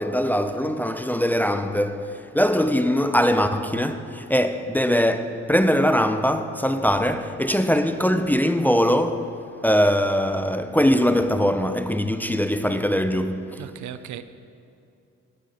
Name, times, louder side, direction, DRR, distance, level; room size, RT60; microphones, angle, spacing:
voice 1, 0.0-13.7, equal, 5° left, 0.5 m, -22 dB
voice 2, 13.6-14.2, right 11 dB, 70° right, 0.6 m, -36 dB
12.0 x 9.1 x 6.3 m
cardioid pair, 90°, 30 cm